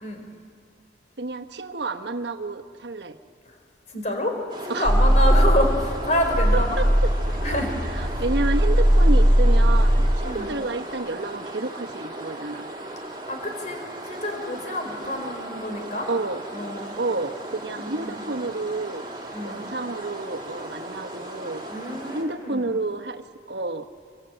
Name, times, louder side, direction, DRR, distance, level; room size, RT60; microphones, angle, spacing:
voice 1, 1.2-3.2 4.7-4.9 6.5-7.1 7.9-12.6 16.1-16.4 17.0-19.0 19.4-21.6 22.1-23.9, right 2 dB, 75° right, 5 dB, 1.2 m, -30 dB
voice 2, 3.9-6.8 7.4-7.8 8.1-8.2 10.2-10.5 13.3-16.1 16.5-17.0 17.7-18.2 19.3-19.7 21.7-22.7, left 1 dB, 40° left, 4 dB, 4.4 m, -28 dB
sound 1, 4.5-22.2, right 1 dB, 30° right, 3.5 m, -37 dB
sound 2, 4.8-10.2, equal, 15° left, 2.2 m, -19 dB
25.0 x 24.0 x 9.0 m, 2.3 s
head